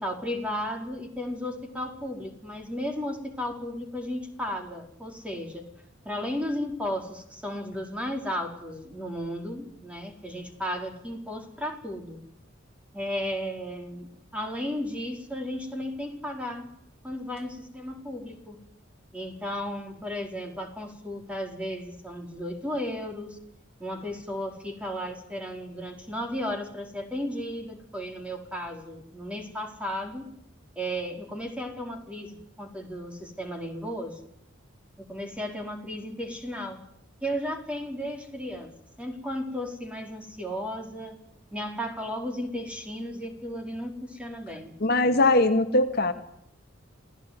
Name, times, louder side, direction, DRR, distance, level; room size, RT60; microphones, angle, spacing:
voice 1, 0.0-5.6 6.0-12.2 12.9-14.1 14.3-16.7 17.0-18.6 19.1-23.4 23.8-30.3 30.7-34.2 35.0-36.8 37.2-38.7 39.0-41.2 41.5-44.7, equal, 5° right, 3 dB, 4.7 m, -34 dB
voice 2, 44.8-46.1, left 2 dB, 55° left, 7 dB, 2.0 m, -21 dB
28.0 x 17.0 x 9.7 m, 0.75 s
head